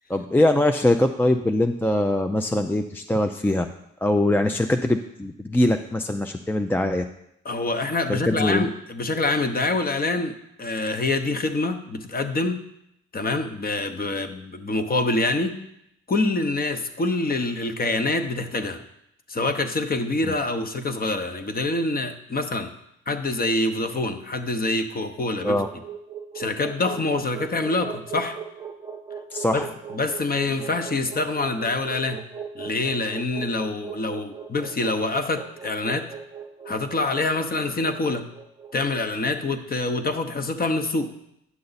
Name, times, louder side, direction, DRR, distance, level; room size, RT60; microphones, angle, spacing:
voice 1, 0.1-3.7 4.0-7.1 8.1-8.7 20.2-20.3 25.4-25.7 29.3-29.7, left 1 dB, 5° left, 6 dB, 0.4 m, -22 dB
voice 2, 7.4-12.7 13.1-15.6 16.1-18.8 19.3-22.7 23.1-25.6 26.3-28.4 29.5-29.7 29.9-32.2 32.5-36.1 36.7-38.3 38.7-41.1, left 2 dB, 30° left, 9 dB, 0.9 m, -26 dB
sound 1, 25.0-39.2, right 6 dB, 15° right, 0.8 m, -39 dB
9.5 x 6.6 x 4.0 m, 0.79 s
cardioid pair, 90°, 30 cm